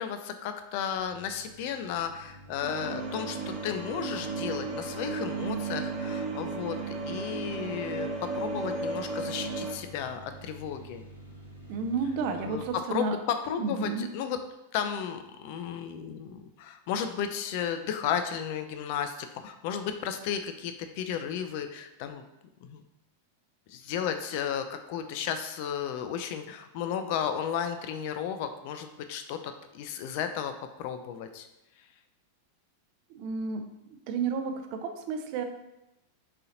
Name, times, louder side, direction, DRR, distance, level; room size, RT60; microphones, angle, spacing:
voice 1, 0.0-11.0 12.4-14.4 14.7-22.2 22.6-22.8 23.7-30.5 30.8-31.5, left 8 dB, 45° left, 8 dB, 0.4 m, -34 dB
sound 1, 0.9-12.8, right 1 dB, 85° left, 1.1 m, -48 dB
sound 2, 2.6-9.8, right 3 dB, 15° right, 0.9 m, -34 dB
voice 2, 11.7-13.2 13.6-14.1 33.1-33.7 34.1-35.4, right 5 dB, 45° right, 6 dB, 0.5 m, -31 dB
4.1 x 3.7 x 2.8 m, 0.90 s
figure-of-eight pair, 90°, 0 cm